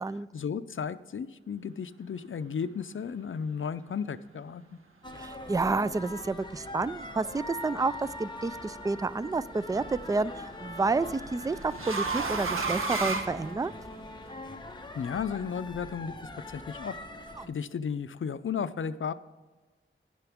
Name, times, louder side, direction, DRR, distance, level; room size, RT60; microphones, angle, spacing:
voice 1, 0.3-4.6 14.9-16.1 16.5-17.0 17.5-19.1, left 6 dB, 75° left, 13 dB, 0.5 m, -34 dB
sound 1, 5.0-17.5, left 2 dB, 20° left, 1.0 m, -42 dB
voice 2, 5.2-13.7 17.4-17.5, right 3 dB, 15° right, 17 dB, 0.3 m, -30 dB
sound 2, 8.2-8.6 10.1-14.1, right 3 dB, 85° right, 1.3 m, -33 dB
12.5 x 10.0 x 3.6 m, 1.3 s
wide cardioid pair, 90°, 21 cm